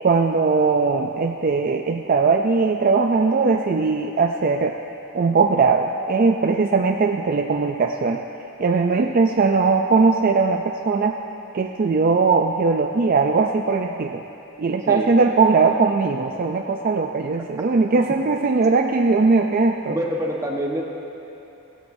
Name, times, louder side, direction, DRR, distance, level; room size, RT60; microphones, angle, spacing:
voice 1, 0.0-4.8 5.1-8.2 8.6-11.2 11.5-14.2 14.6-20.0, right 4 dB, 40° right, 3 dB, 0.4 m, -19 dB
voice 2, 19.9-20.8, equal, 15° right, -1 dB, 1.2 m, -26 dB
16.5 x 16.0 x 2.7 m, 2.9 s
head